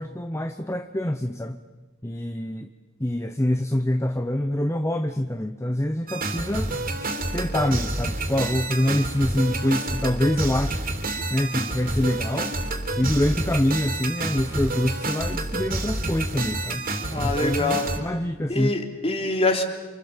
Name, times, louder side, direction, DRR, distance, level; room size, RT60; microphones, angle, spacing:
voice 1, 0.0-1.6 2.0-2.7 3.0-6.7 7.3-10.8 11.3-12.6 13.0-18.7, left 1 dB, 15° left, 7 dB, 0.9 m, -25 dB
sound 1, 6.1-18.0, right 2 dB, 45° right, 3.5 m, -29 dB
voice 2, 17.1-17.9 18.5-19.6, left 2 dB, 30° left, 4 dB, 3.2 m, -24 dB
27.5 x 27.5 x 7.4 m, 1.2 s
head